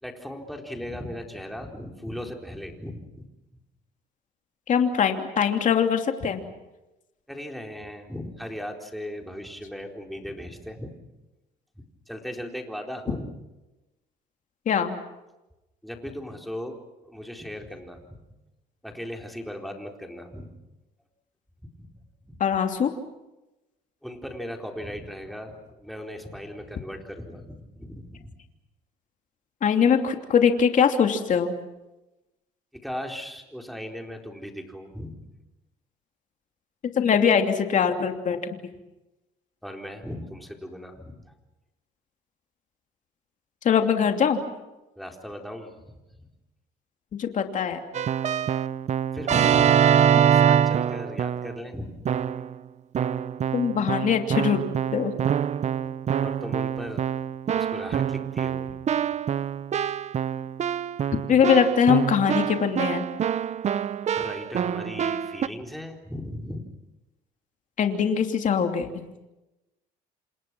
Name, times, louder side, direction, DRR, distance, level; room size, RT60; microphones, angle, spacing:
voice 1, 0.0-3.3 7.3-10.9 11.8-13.3 15.8-16.8 17.1-18.2 18.8-20.5 21.6-21.9 22.2-22.4 24.0-28.3 32.7-35.3 39.6-41.2 45.0-46.0 49.1-49.8 50.3-52.0 56.2-57.1 57.5-58.8 64.1-66.6, equal, ahead, 2 dB, 4.2 m, -37 dB
voice 2, 4.7-6.4 14.7-15.0 22.4-22.9 29.6-31.5 37.0-38.4 43.6-44.4 47.2-47.8 53.5-54.6 54.9-55.1 61.3-63.1 67.8-68.9, left 7 dB, 50° left, 5 dB, 2.9 m, -22 dB
Keyboard (musical), 47.9-51.6 52.1-52.6 52.9-65.5, right 9 dB, 40° right, 0.8 m, -25 dB
29.0 x 27.5 x 6.2 m, 1.0 s
cardioid pair, 110°, 17 cm